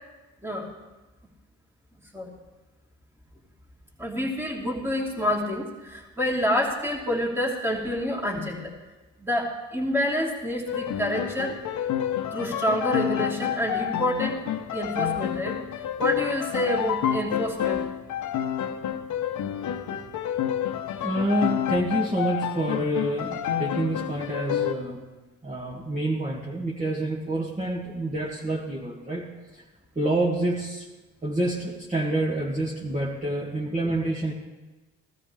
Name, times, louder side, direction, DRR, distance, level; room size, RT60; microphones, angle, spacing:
voice 1, 4.0-8.7 9.2-11.6 12.3-14.4 14.7-15.6 16.0-17.8, equal, 5° right, -2 dB, 2.7 m, -28 dB
sound 1, 10.7-24.7, left 10 dB, 75° left, 0.9 m, -29 dB
voice 2, 21.0-25.0 25.4-29.6 30.0-30.9 31.2-34.3, right 1 dB, 25° right, -5 dB, 1.9 m, -28 dB
16.5 x 13.0 x 3.3 m, 1.1 s
cardioid pair, 90°, 30 cm